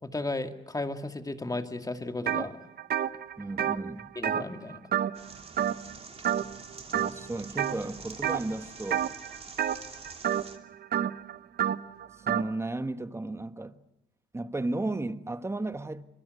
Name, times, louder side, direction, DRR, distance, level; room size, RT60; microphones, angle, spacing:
voice 1, 0.0-2.6 4.2-4.8, left 2 dB, 20° left, 2.2 m, -34 dB
sound 1, 2.3-2.5 2.8-5.3 5.6-5.9 6.2-6.6 6.9-7.7 8.2-8.5 8.9-12.5, right 10 dB, 55° right, 0.9 m, -29 dB
voice 2, 3.4-4.1 6.9-9.1 12.2-13.8 14.3-16.0, right 2 dB, 15° right, 1.3 m, -34 dB
sound 2, 5.1-10.6, right 4 dB, 30° right, 3.0 m, -47 dB
25.0 x 23.0 x 8.2 m
cardioid pair, 90°, 20 cm